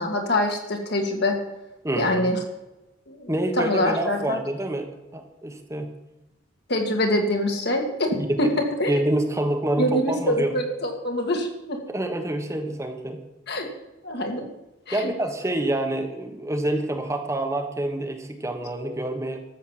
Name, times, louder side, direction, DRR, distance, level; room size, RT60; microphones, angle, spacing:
voice 1, 0.0-1.4 2.0-2.4 3.1-4.4 6.7-8.9 9.8-11.8 13.5-13.7 14.0-14.4 14.9-15.1, left 1 dB, 55° left, 3 dB, 2.3 m, -25 dB
voice 2, 1.8-2.3 3.3-5.9 8.4-8.5 8.9-10.5 11.9-13.2 14.9-19.4, right 1 dB, 15° right, 4 dB, 1.2 m, -27 dB
13.0 x 7.5 x 7.5 m, 0.97 s
head